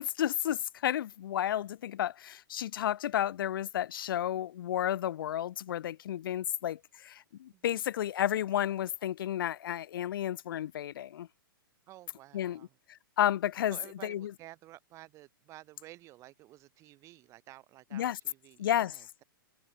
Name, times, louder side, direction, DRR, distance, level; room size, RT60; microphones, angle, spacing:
voice 1, 0.0-11.3 12.3-12.6 12.9-13.8 14.0-14.3 17.9-18.2 18.6-19.0, left 11 dB, 75° left, 0.4 m, -32 dB
voice 2, 11.9-12.7 13.7-19.2, right 16 dB, 25° right, 2.4 m, -53 dB
hypercardioid pair, 150°, 12 cm